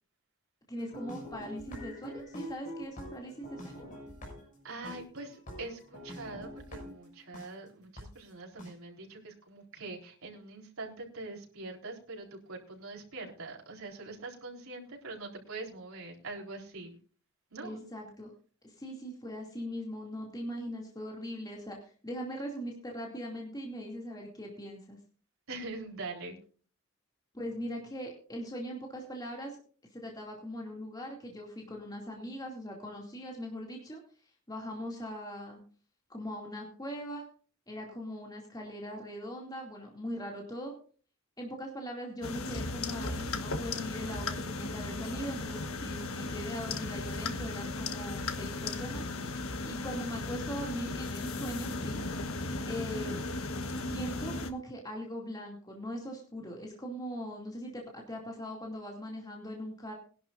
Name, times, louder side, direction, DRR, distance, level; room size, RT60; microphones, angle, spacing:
sound 1, 0.7-7.5 8.0-8.1 8.6-8.7, equal, 40° left, 6.6 m, -45 dB
voice 1, 0.7-3.8 17.6-18.3 18.6-25.0 27.3-29.6 29.9-34.0 34.5-35.6 36.1-37.3 37.7-40.7 41.4-49.1 49.3-52.0 52.7-53.2 53.8-59.9, equal, 20° left, 0 dB, 2.5 m, -40 dB
voice 2, 4.6-17.0 17.5-17.8 25.5-26.4, right 3 dB, 85° right, 0 dB, 4.1 m, -43 dB
sound 2, 42.2-54.5, left 3 dB, 90° left, 1.4 m, -36 dB
21.5 x 11.5 x 2.6 m, 0.40 s
head